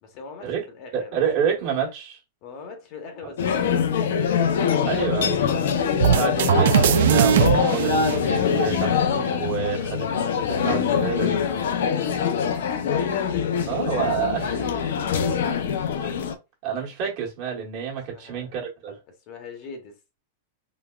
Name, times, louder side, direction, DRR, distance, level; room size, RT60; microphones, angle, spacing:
voice 1, 0.0-1.2 2.4-5.5 9.5-10.0 12.1-13.6 14.1-15.5 18.1-18.5 19.3-20.0, left 4 dB, 40° left, 0.9 m, -43 dB
voice 2, 0.9-2.2 4.8-5.5 6.0-9.0 9.4-10.1 10.4-11.4 13.7-14.7 16.6-19.0, right 7 dB, 45° right, 1.3 m, -28 dB
sound 1, 3.4-16.4, left 7 dB, 80° left, 0.5 m, -24 dB
sound 2, 6.0-8.9, right 10 dB, 70° right, 0.3 m, -20 dB
3.9 x 2.1 x 2.2 m
supercardioid pair, 155°, 0 cm